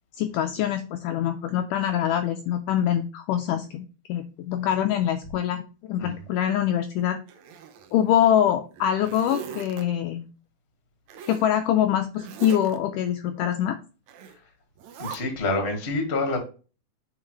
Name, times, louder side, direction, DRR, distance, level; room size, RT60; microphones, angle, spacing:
voice 1, 0.2-5.6 5.9-7.2 7.9-10.3 11.3-13.8, left 10 dB, 85° left, 7 dB, 1.8 m, -24 dB
Zipper (clothing), 7.3-8.3 8.7-9.8 11.1-11.5 12.1-12.8 14.1-14.4 14.8-15.2, right 7 dB, 85° right, 1.6 m, -40 dB
voice 2, 15.0-16.4, left 2 dB, 30° left, 3 dB, 1.2 m, -27 dB
8.5 x 4.4 x 3.2 m, 0.34 s
omnidirectional pair, 4.3 m